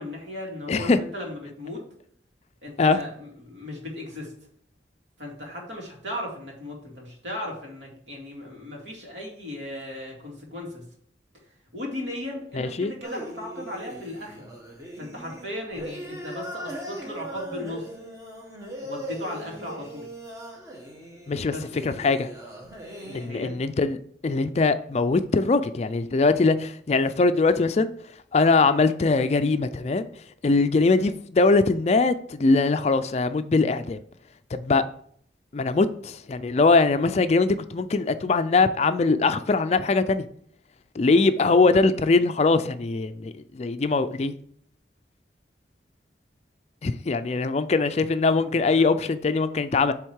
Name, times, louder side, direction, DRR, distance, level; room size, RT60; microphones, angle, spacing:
voice 1, 0.0-1.8 2.6-4.3 5.2-10.8 11.7-14.5 15.0-17.9 18.8-20.1 21.5-21.7 23.0-23.6 48.4-48.9, left 1 dB, 80° right, 2.3 m, -36 dB
voice 2, 12.6-12.9 21.3-21.5 21.8-22.3 23.1-24.0 24.2-27.9 28.3-30.1 30.4-34.0 34.5-34.8 35.5-40.3 41.0-44.3 46.8-49.9, left 3 dB, 35° left, 0.4 m, -22 dB
sound 1, 13.0-23.3, right 1 dB, 20° right, 1.2 m, -39 dB
7.9 x 3.6 x 4.6 m
head